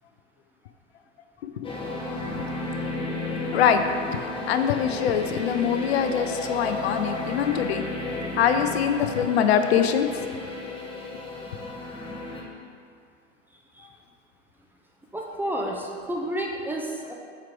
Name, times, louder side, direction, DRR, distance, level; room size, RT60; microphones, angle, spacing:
sound 1, 1.6-12.4, left 2 dB, 15° left, 1.0 m, -33 dB
voice 1, 3.5-3.8 4.5-7.8 8.4-10.1, left 8 dB, 60° left, 8 dB, 0.5 m, -23 dB
voice 2, 15.1-17.1, right 1 dB, 5° right, -2 dB, 0.5 m, -30 dB
7.3 x 4.7 x 3.7 m, 2.2 s
figure-of-eight pair, 85°, 37 cm